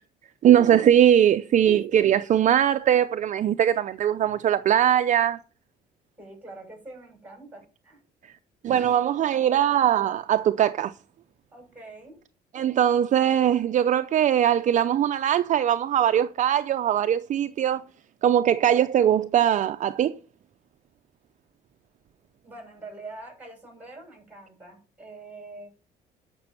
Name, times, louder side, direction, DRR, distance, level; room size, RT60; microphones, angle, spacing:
voice 1, 0.4-5.4 8.6-10.9 12.5-17.8 18.2-20.1, right 10 dB, 45° right, 0.5 m, -21 dB
voice 2, 6.2-8.0 11.5-12.1 22.4-25.7, right 2 dB, 10° right, 6.4 m, -44 dB
11.5 x 6.1 x 5.6 m
cardioid pair, 110°, 17 cm